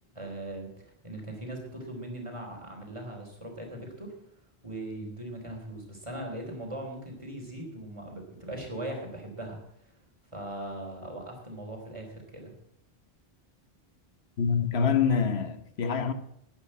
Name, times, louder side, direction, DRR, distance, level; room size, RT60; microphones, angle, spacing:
voice 1, 0.2-0.7 1.0-4.1 4.6-9.6 10.3-12.5, right 1 dB, 30° right, 3.7 m, -39 dB
voice 2, 14.4-16.1, left 6 dB, 85° left, 1.3 m, -26 dB
11.5 x 10.5 x 7.5 m
omnidirectional pair, 1.0 m